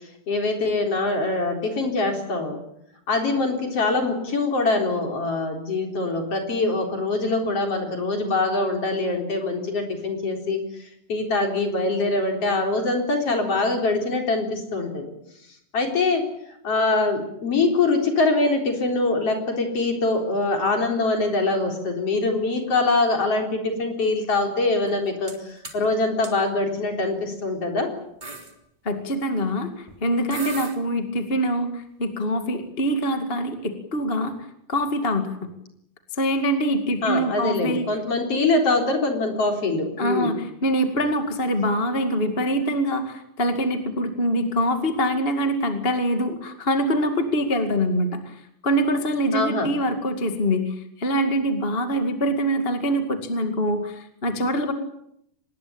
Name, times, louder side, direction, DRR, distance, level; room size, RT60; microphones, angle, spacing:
voice 1, 0.3-2.6 3.1-10.6 11.1-15.1 15.7-16.2 16.6-27.9 37.0-40.3 49.3-49.7, left 3 dB, 45° left, 4 dB, 4.8 m, -23 dB
sound 1, 24.9-25.4 25.6-25.8 26.2-26.3 27.2-27.4 27.8-27.9 28.2-28.5 29.9-30.0 30.3-30.8, right 3 dB, 15° right, 3.2 m, -36 dB
voice 2, 28.8-34.3 34.7-35.5 36.1-37.9 40.0-54.7, equal, 20° left, 7 dB, 1.9 m, -24 dB
25.0 x 20.0 x 8.8 m, 0.75 s
omnidirectional pair, 3.7 m